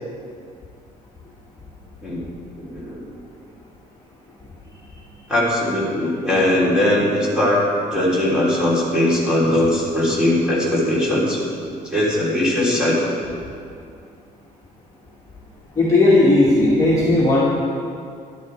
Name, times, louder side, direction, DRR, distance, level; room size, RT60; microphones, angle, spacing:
voice 1, 2.6-3.0 5.3-11.4 11.8-13.1, left 1 dB, 5° right, -8 dB, 3.4 m, -20 dB
voice 2, 15.8-17.4, left 2 dB, 20° left, -8 dB, 2.0 m, -15 dB
12.0 x 11.5 x 4.7 m, 2.3 s
cardioid pair, 165°, 16 cm